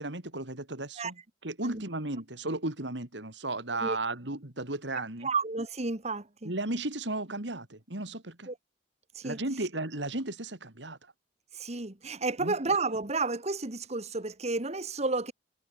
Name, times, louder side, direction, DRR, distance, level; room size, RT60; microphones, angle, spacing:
voice 1, 0.0-5.3 6.4-8.5 9.2-11.1 12.4-12.6, right 2 dB, 80° right, 3.6 m, -35 dB
voice 2, 5.2-6.5 8.5-8.6 9.2-9.4 11.5-15.3, right 3 dB, 40° right, 1.9 m, -31 dB
head